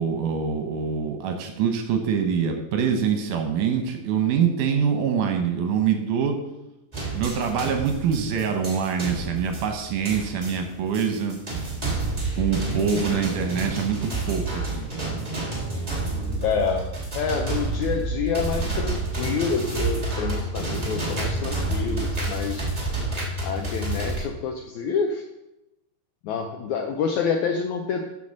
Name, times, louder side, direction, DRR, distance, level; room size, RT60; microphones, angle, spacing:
voice 1, 0.0-6.4 7.1-11.4 12.4-15.2, right 7 dB, 70° right, 5 dB, 2.2 m, -25 dB
sound 1, 6.9-24.2, right 2 dB, 15° right, 1.3 m, -29 dB
voice 2, 12.6-13.2 16.4-22.6 23.4-25.2 26.2-28.2, left 6 dB, 80° left, 4 dB, 1.7 m, -28 dB
7.7 x 5.7 x 6.4 m, 0.92 s
omnidirectional pair, 4.1 m